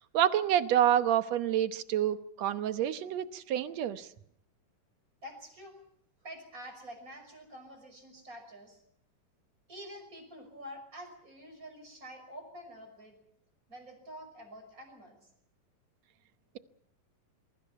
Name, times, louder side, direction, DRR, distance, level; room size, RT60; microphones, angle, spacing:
voice 1, 0.0-4.1, right 10 dB, 65° right, 11 dB, 1.9 m, -28 dB
voice 2, 5.2-5.8 6.2-8.8 9.7-13.2 13.7-15.2, equal, 25° right, 5 dB, 6.1 m, -47 dB
26.0 x 23.0 x 5.7 m, 0.70 s
omnidirectional pair, 3.9 m